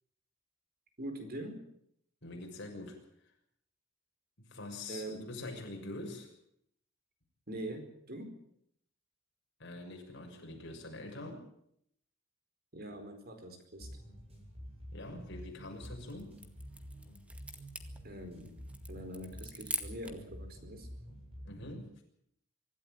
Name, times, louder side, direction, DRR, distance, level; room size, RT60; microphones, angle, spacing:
voice 1, 1.0-1.6 4.9-5.2 7.5-8.3 12.7-13.9 18.0-18.5 18.9-20.9, right 1 dB, 50° right, 7 dB, 4.5 m, -43 dB
voice 2, 2.2-3.3 4.4-6.3 9.6-11.4 14.9-16.4 21.4-21.9, left 2 dB, 60° left, 2 dB, 6.6 m, -45 dB
sound 1, 13.8-21.8, equal, 30° right, 7.2 m, -49 dB
sound 2, 15.6-20.3, right 1 dB, 5° right, 2.0 m, -44 dB
25.0 x 13.0 x 9.3 m, 0.71 s
head